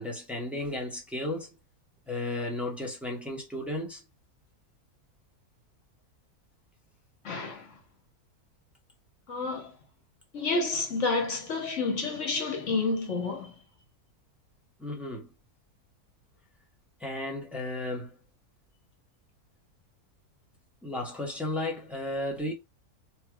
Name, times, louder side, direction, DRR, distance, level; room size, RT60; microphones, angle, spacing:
voice 1, 0.0-1.5 2.1-4.0 14.8-15.3 17.0-18.2 20.8-22.5, left 1 dB, ahead, 0.6 m, -34 dB
voice 2, 7.2-7.7 9.3-9.7 10.3-13.5, left 3 dB, 55° left, 1.3 m, -29 dB
3.2 x 2.8 x 2.3 m
omnidirectional pair, 1.7 m